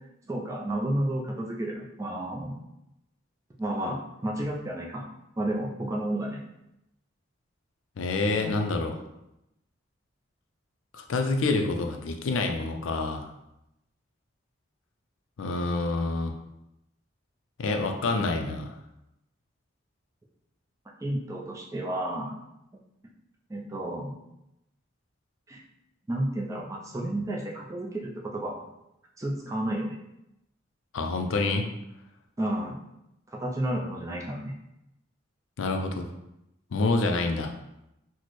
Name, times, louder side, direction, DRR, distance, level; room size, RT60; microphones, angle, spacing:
voice 1, 0.3-2.6 3.6-5.1 5.4-6.4 21.0-22.4 23.5-24.2 25.5-25.6 26.1-28.7 29.2-30.0 32.4-32.8 33.3-34.6, right 1 dB, 15° right, -2 dB, 0.4 m, -31 dB
voice 2, 8.0-9.0 10.9-13.3 15.4-16.4 17.6-18.8 30.9-31.6 35.6-36.1 36.7-37.5, left 3 dB, 75° left, 4 dB, 0.4 m, -27 dB
4.1 x 2.1 x 3.0 m, 0.86 s
head